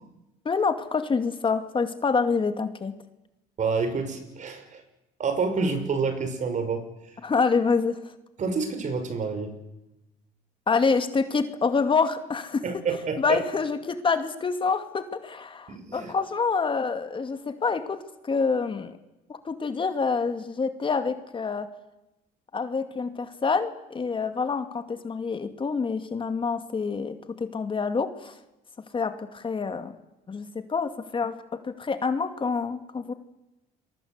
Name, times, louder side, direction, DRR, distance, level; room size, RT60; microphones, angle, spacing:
voice 1, 0.4-2.9 7.2-8.0 10.7-12.6 13.2-18.9 19.3-21.7 22.5-28.3 28.9-29.9 30.3-31.3 31.6-33.1, left 5 dB, 30° left, 8 dB, 2.3 m, -27 dB
voice 2, 3.6-4.8 5.2-6.9 8.4-9.5 12.6-13.4 15.7-16.1, right 4 dB, 45° right, 9 dB, 6.0 m, -28 dB
28.5 x 22.5 x 8.2 m, 0.94 s
cardioid pair, 110°, 17 cm